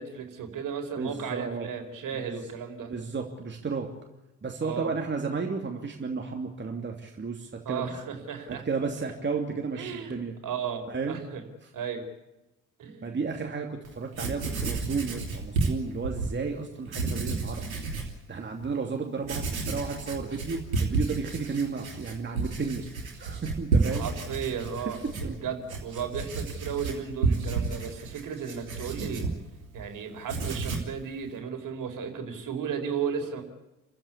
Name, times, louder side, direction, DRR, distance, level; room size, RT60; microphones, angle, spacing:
voice 1, 0.0-2.9 4.6-4.9 7.6-8.6 9.7-10.1 10.4-11.4 11.7-12.0 12.8-13.2 23.8-29.3 29.7-33.4, right 7 dB, 50° right, 5 dB, 4.6 m, -35 dB
voice 2, 1.0-1.7 2.1-2.3 2.9-3.9 4.4-7.9 8.5-10.3 10.9-11.2 13.0-17.6 18.3-22.8 23.2-24.1 25.2-25.3, right 4 dB, 25° right, 2 dB, 2.9 m, -33 dB
Writing, 13.8-13.9 14.1-16.3 16.8-18.1 18.6-18.7 19.2-29.9 30.2-31.0, right 4 dB, 85° right, 2.9 m, -31 dB
29.5 x 15.0 x 8.5 m, 0.98 s
figure-of-eight pair, 55°, 41 cm